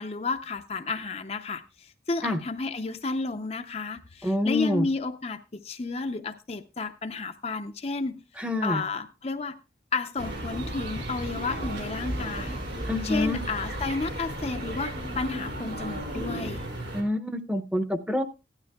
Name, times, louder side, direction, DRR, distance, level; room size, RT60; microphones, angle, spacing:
voice 1, 0.0-9.6 9.9-12.6 13.0-16.6, left 3 dB, 35° left, 0.5 m, -32 dB
voice 2, 4.2-4.9 8.4-8.8 12.9-13.4 16.9-18.2, left 1 dB, 5° right, 0.7 m, -27 dB
sound 1, 10.2-16.7, right 1 dB, 55° right, 3.1 m, -37 dB
sound 2, 10.2-17.0, right 1 dB, 75° right, 3.7 m, -37 dB
16.0 x 12.0 x 2.3 m
head